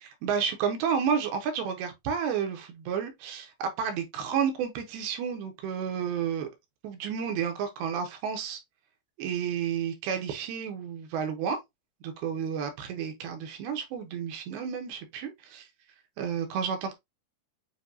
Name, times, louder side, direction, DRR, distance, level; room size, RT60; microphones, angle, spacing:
voice 1, 0.2-6.5 6.8-8.6 9.2-11.6 12.0-15.7 16.2-16.9, right 7 dB, 80° right, 2.9 m, -31 dB
6.9 x 2.8 x 2.6 m
omnidirectional pair, 4.6 m